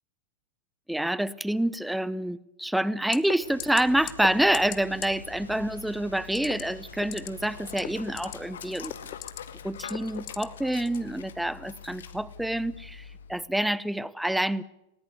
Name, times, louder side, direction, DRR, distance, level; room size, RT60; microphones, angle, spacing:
voice 1, 0.9-8.9 9.6-14.6, right 1 dB, ahead, 21 dB, 0.7 m, -27 dB
sound 1, 3.1-3.3 3.6-3.8 4.1-4.3 4.5-4.8 5.0-5.1 6.3-6.6 7.0-7.3 7.7-8.3 8.7-9.4 9.8-10.4 10.9-11.0, left 22 dB, 40° left, 1.0 m, -35 dB
sound 2, 3.4-8.4, left 1 dB, 85° left, 3.6 m, -49 dB
Dog, 3.6-13.5, left 7 dB, 65° left, 1.8 m, -45 dB
20.0 x 18.0 x 8.4 m, 0.96 s
figure-of-eight pair, 90°, 0 cm